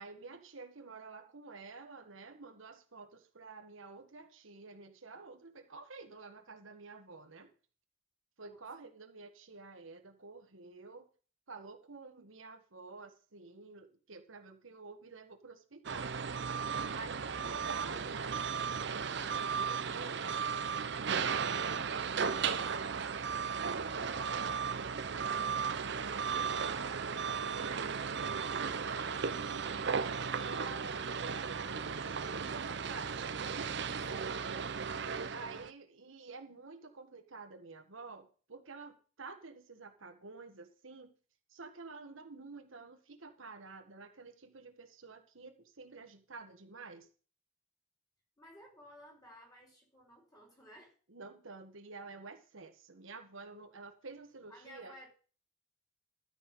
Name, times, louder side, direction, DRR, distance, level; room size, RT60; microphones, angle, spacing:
voice 1, 0.0-7.5 8.4-11.1 11.5-16.2 16.9-18.4 19.3-25.7 26.3-27.0 27.4-28.0 28.3-33.2 34.1-34.7 35.3-41.1 41.5-47.1 51.1-54.9, right 4 dB, 75° right, 6 dB, 1.4 m, -50 dB
sound 1, 15.8-35.7, right 6 dB, 55° right, 0.7 m, -35 dB
voice 2, 34.1-34.5 48.4-50.9 54.5-55.1, equal, 20° left, -2 dB, 4.4 m, -56 dB
12.5 x 6.8 x 5.3 m, 0.39 s
head